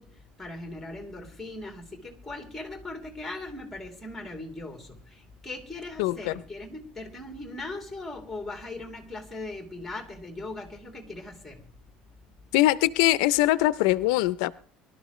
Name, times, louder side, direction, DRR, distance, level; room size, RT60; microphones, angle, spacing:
voice 1, 0.0-11.6, left 2 dB, 5° left, 2 dB, 3.0 m, -39 dB
voice 2, 6.0-6.3 12.5-14.6, left 16 dB, 90° left, 17 dB, 0.5 m, -22 dB
22.5 x 12.5 x 3.1 m, 0.43 s
cardioid pair, 160°, 3 cm